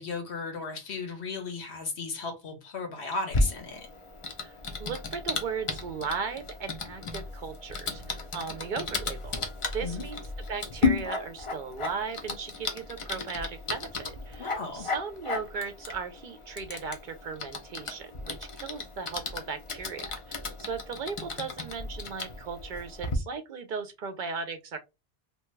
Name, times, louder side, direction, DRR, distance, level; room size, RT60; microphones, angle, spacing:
voice 1, 0.0-3.9 9.8-10.0 14.4-14.9, left 4 dB, 85° left, 1.1 m, -35 dB
Typing, 3.3-23.2, left 3 dB, 40° left, 0.5 m, -34 dB
voice 2, 4.8-9.4 9.7-10.2 10.5-24.8, right 5 dB, 60° right, 0.6 m, -37 dB
2.8 x 2.2 x 3.1 m
omnidirectional pair, 1.1 m